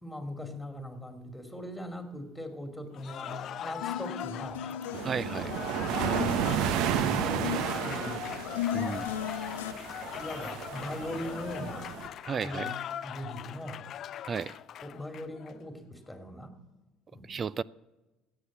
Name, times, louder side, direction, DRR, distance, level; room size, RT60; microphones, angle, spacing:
voice 1, 0.0-4.7 7.0-8.3 8.7-9.4 10.2-11.9 12.4-12.8 13.0-13.9 14.8-16.6 17.1-17.3, left 1 dB, 5° left, 2.6 m, -40 dB
Cheering / Applause, 2.9-15.5, left 10 dB, 55° left, 0.4 m, -41 dB
sound 1, 3.8-9.7, left 10 dB, 85° left, 0.9 m, -37 dB
sound 2, 4.9-12.1, right 8 dB, 70° right, 0.9 m, -32 dB
voice 2, 5.0-5.5 8.7-9.1 12.2-12.7 14.2-14.6 17.3-17.6, right 6 dB, 40° right, 0.4 m, -33 dB
14.5 x 8.5 x 7.2 m
hypercardioid pair, 70°, 0 cm